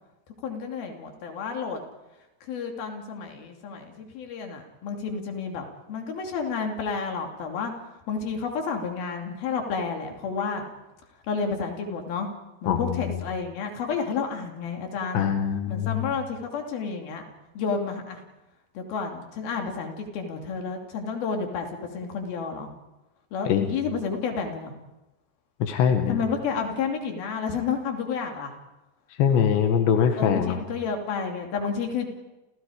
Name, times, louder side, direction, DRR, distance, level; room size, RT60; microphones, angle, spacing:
voice 1, 0.4-1.8 2.4-7.7 8.1-10.6 11.3-12.3 12.6-15.3 15.7-17.2 17.5-18.2 18.8-21.7 21.9-22.7 23.3-24.7 26.1-28.5 30.2-32.1, left 5 dB, 60° left, 3 dB, 4.5 m, -30 dB
voice 2, 12.7-13.0 15.1-16.0 23.5-23.7 25.6-26.2 29.2-30.6, left 8 dB, 90° left, 6 dB, 3.8 m, -22 dB
29.5 x 29.5 x 5.1 m, 1.0 s
omnidirectional pair, 4.9 m